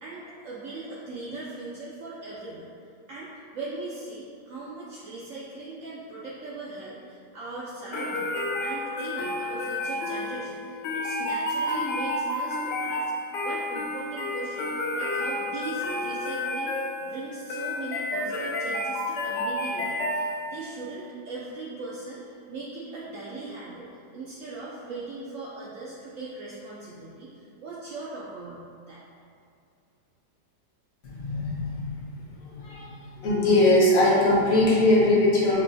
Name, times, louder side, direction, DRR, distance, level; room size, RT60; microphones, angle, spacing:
voice 1, 0.0-2.7 3.1-8.3 8.6-29.0, right 3 dB, 80° right, -7 dB, 0.7 m, -39 dB
sound 1, 7.9-20.7, left 1 dB, 80° left, 1.2 m, -30 dB
voice 2, 31.0-32.9 33.2-35.6, left 1 dB, 60° left, -6 dB, 1.2 m, -21 dB
6.2 x 2.2 x 2.6 m, 2.5 s
omnidirectional pair, 1.9 m